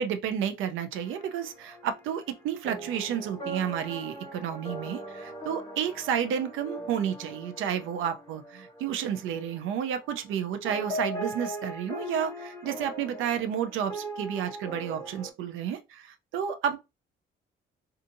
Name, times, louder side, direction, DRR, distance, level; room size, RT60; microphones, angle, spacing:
voice 1, 0.0-16.8, right 8 dB, 85° right, 0.5 m, -31 dB
sound 1, 1.0-10.4 10.6-15.3, right 1 dB, 20° left, 1.3 m, -40 dB
2.6 x 2.5 x 2.5 m
cardioid pair, 90°, 20 cm